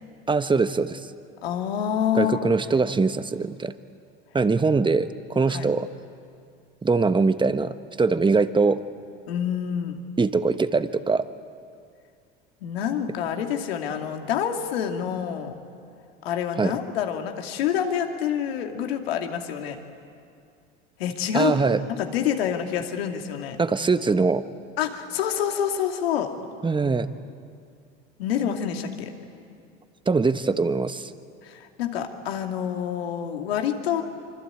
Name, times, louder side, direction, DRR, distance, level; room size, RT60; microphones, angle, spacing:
voice 1, 0.3-1.0 2.1-3.7 4.3-5.9 6.8-8.8 10.2-11.2 16.6-16.7 21.3-21.8 23.6-24.4 26.6-27.1 30.1-31.1, right 4 dB, 15° right, 11 dB, 1.2 m, -22 dB
voice 2, 1.4-2.5 5.5-5.7 9.3-10.0 12.6-15.5 16.2-19.8 21.0-21.6 21.9-23.6 24.8-26.3 28.2-29.1 31.4-34.0, left 9 dB, 80° left, 4 dB, 2.6 m, -27 dB
25.0 x 25.0 x 9.0 m, 2.3 s
hypercardioid pair, 85°, 30 cm